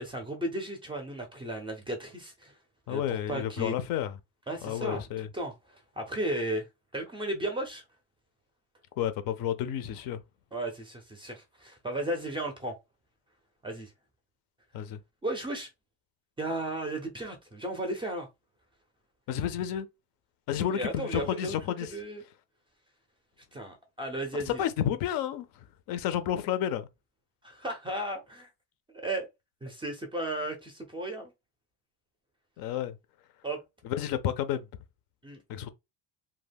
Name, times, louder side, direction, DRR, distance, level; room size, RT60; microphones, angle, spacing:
voice 1, 0.0-2.5 2.9-3.7 4.5-5.0 5.3-6.7 6.9-7.8 10.5-12.7 13.6-13.9 15.2-15.7 16.4-18.3 20.6-22.2 23.5-24.6 27.4-28.5 28.9-29.3 29.6-31.3 33.4-33.6 35.2-35.4, right 1 dB, 15° right, 0.4 m, -35 dB
voice 2, 2.9-4.1 4.6-5.3 9.0-10.2 14.7-15.0 19.3-19.9 20.5-21.9 24.3-26.9 32.6-33.0 33.8-34.6 35.5-35.7, left 10 dB, 60° left, 0.5 m, -31 dB
2.2 x 2.1 x 3.3 m
cardioid pair, 135°, 41 cm